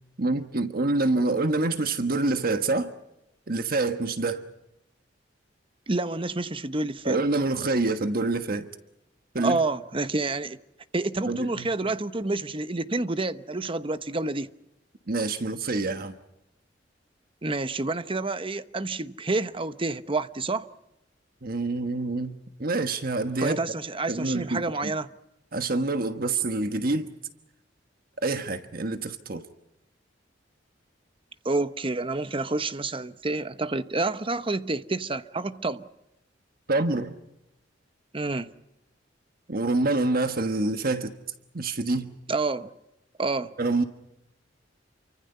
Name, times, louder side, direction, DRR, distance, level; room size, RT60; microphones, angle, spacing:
voice 1, 0.2-2.9 3.5-4.4 7.0-8.7 9.3-9.6 11.3-11.7 15.1-16.1 21.4-23.6 24.1-24.9 25.5-27.1 28.2-29.5 36.7-37.1 39.5-41.1 41.5-42.1 43.6-43.8, right 2 dB, 50° right, 1.4 m, -26 dB
voice 2, 5.9-7.2 9.4-10.6 10.9-14.5 17.4-20.7 23.4-25.1 31.4-35.8 38.1-38.5 42.3-42.7 43.2-43.5, right 2 dB, 30° right, 0.9 m, -28 dB
29.0 x 25.0 x 5.6 m
head